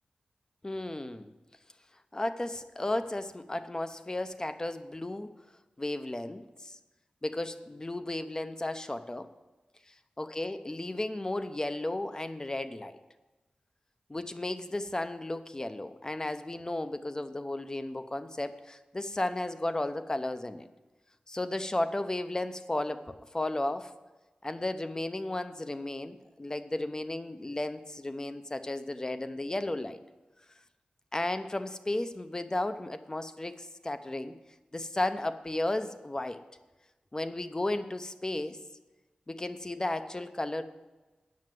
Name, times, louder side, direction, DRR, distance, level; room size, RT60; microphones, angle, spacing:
voice 1, 0.6-1.3 2.1-5.3 5.8-6.8 7.2-9.3 10.2-13.0 14.1-20.7 21.3-23.9 24.4-30.0 31.1-34.3 34.7-36.4 37.1-38.6 39.3-40.6, left 1 dB, 25° left, 10 dB, 0.7 m, -34 dB
9.5 x 6.4 x 7.6 m, 1.2 s
wide cardioid pair, 75°, 3 cm